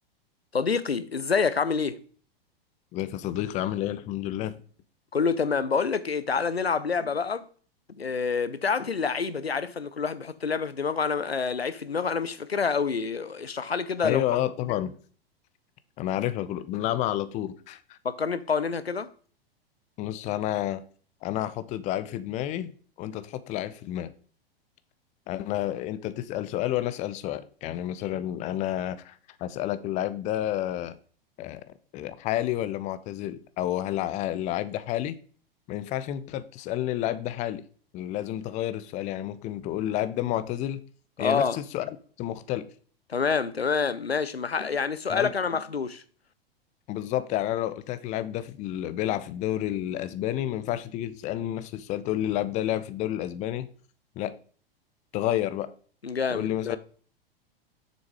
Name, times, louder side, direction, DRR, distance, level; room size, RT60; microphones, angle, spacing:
voice 1, 0.5-2.0 5.1-7.4 8.0-14.2 18.0-19.1 41.2-41.6 43.1-46.0 56.0-56.8, left 5 dB, 85° left, 0.6 m, -27 dB
voice 2, 2.9-4.5 14.0-14.9 16.0-18.0 20.0-20.8 21.2-22.7 23.0-24.1 25.3-31.0 31.4-31.6 31.9-35.2 35.7-37.6 37.9-40.8 41.2-41.9 42.2-42.7 45.1-45.3 46.9-53.7 54.2-54.3 55.1-55.7 56.3-56.8, left 13 dB, 25° left, 0.6 m, -30 dB
7.0 x 6.2 x 4.7 m
figure-of-eight pair, 95°, 30 cm